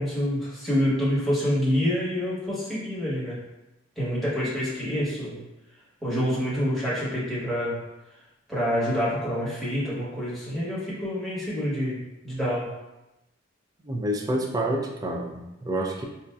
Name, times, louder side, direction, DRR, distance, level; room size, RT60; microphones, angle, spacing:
voice 1, 0.0-3.4 4.0-5.4 6.0-7.7 8.5-12.0 12.2-12.7, equal, ahead, -10 dB, 1.0 m, -27 dB
voice 2, 13.8-16.0, right 1 dB, 20° right, 1 dB, 0.3 m, -28 dB
4.1 x 2.5 x 2.3 m, 0.98 s
head